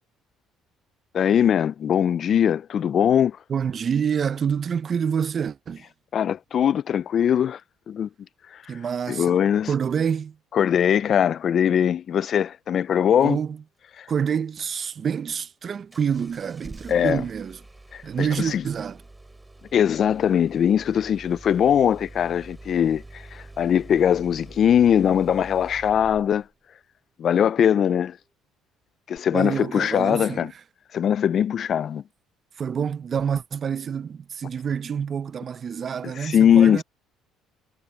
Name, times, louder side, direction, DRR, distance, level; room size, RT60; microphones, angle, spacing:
voice 1, 1.1-3.4 6.1-7.6 7.9-8.1 9.1-9.7 10.5-13.4 14.0-14.1 16.9-17.2 17.9-18.6 19.7-26.4 27.2-28.2 29.1-30.5 30.9-32.0 36.2-36.8, left 9 dB, 45° left, 0.3 m, -21 dB
voice 2, 3.5-5.8 8.7-10.4 13.2-13.6 14.1-17.6 18.0-19.0 29.3-30.5 32.6-36.8, right 7 dB, 40° right, 0.7 m, -27 dB
Engine starting, 15.9-26.5 29.2-29.3, right 2 dB, 10° right, 4.6 m, -45 dB
cardioid pair, 120°, 0 cm